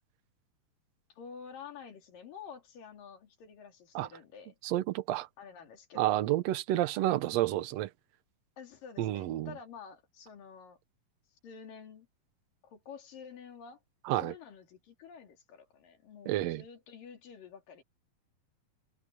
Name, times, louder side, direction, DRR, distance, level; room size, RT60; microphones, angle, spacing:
voice 1, 1.1-4.6 5.4-6.3 8.6-10.8 11.3-12.1 12.6-13.8 14.2-17.8, left 6 dB, 70° left, 4.7 m, -49 dB
voice 2, 4.6-5.3 6.0-7.9 9.0-9.5 14.1-14.3 16.3-16.6, right 14 dB, 80° right, 1.5 m, -30 dB
omnidirectional pair, 4.1 m